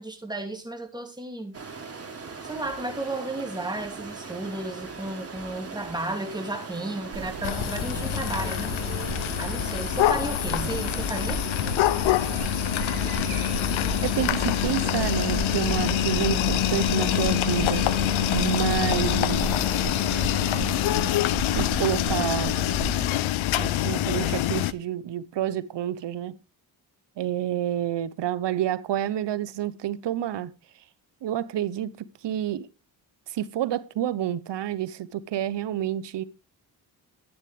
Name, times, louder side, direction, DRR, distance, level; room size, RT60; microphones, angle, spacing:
voice 1, 0.0-1.6 2.4-8.8 9.4-11.4, right 2 dB, 10° right, 2.7 m, -33 dB
Stream, 1.5-20.8, right 4 dB, 30° right, 2.9 m, -40 dB
sound 1, 7.1-23.1, right 3 dB, 85° right, 2.7 m, -34 dB
sound 2, 7.4-24.7, left 14 dB, 75° left, 0.7 m, -25 dB
voice 2, 14.0-17.9 18.3-19.7 21.5-22.5 23.6-26.3 27.2-30.5 31.2-32.7 33.3-36.2, right 11 dB, 60° right, 1.0 m, -29 dB
11.0 x 9.2 x 3.4 m
cardioid pair, 70°, 48 cm